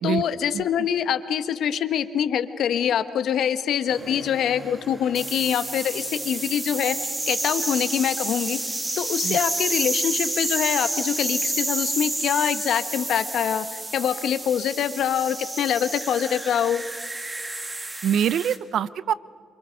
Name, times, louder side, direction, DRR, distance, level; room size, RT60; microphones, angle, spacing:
voice 1, 0.0-8.6 9.0-16.8, left 9 dB, 70° left, 11 dB, 1.2 m, -25 dB
sound 1, 3.9-18.6, right 2 dB, 20° right, 2.1 m, -30 dB
voice 2, 18.0-19.1, right 9 dB, 70° right, 19 dB, 0.6 m, -24 dB
28.5 x 26.0 x 5.2 m, 2.1 s
cardioid pair, 90°, 0 cm